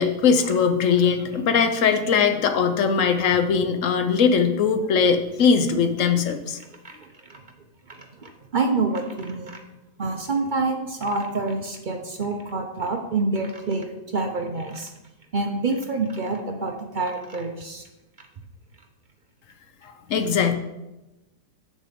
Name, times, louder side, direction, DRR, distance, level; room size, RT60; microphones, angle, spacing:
voice 1, 0.0-6.6 20.1-20.6, left 6 dB, 60° left, 7 dB, 0.9 m, -20 dB
voice 2, 7.9-9.6 10.0-13.9 14.1-14.9 15.3-17.8, right 3 dB, 50° right, 3 dB, 0.6 m, -27 dB
7.5 x 6.4 x 5.1 m, 1.0 s
omnidirectional pair, 1.8 m